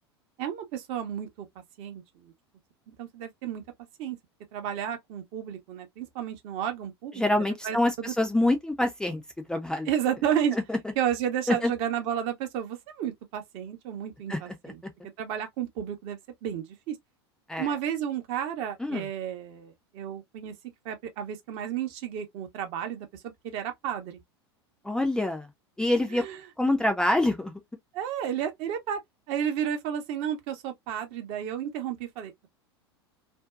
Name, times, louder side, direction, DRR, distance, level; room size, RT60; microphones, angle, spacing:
voice 1, 0.4-1.5 1.8-2.3 3.0-3.6 4.0-4.2 4.5-7.2 7.6-8.1 9.9-10.6 11.0-14.8 15.2-16.9 17.6-20.5 20.8-24.2 26.1-26.4 27.9-29.0 29.3-32.5, right 9 dB, 45° right, 0.8 m, -32 dB
voice 2, 7.2-9.2 9.5-9.9 10.7-10.8 11.5-11.7 14.3-14.7 17.5-17.7 18.8-19.0 24.8-25.5 25.8-26.2 26.6-27.5, left 1 dB, 5° left, 0.4 m, -26 dB
2.6 x 2.1 x 2.3 m
figure-of-eight pair, 80°, 14 cm